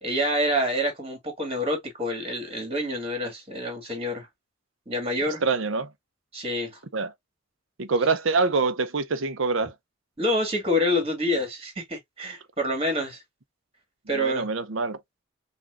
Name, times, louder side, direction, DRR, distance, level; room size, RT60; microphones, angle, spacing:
voice 1, 0.0-4.3 4.9-5.4 6.3-6.8 10.2-13.2 14.1-14.5, left 1 dB, 30° right, 2.3 m, -27 dB
voice 2, 5.4-5.9 6.9-7.1 7.8-9.7 14.1-15.0, right 4 dB, 70° right, 0.7 m, -25 dB
6.0 x 2.5 x 2.5 m
head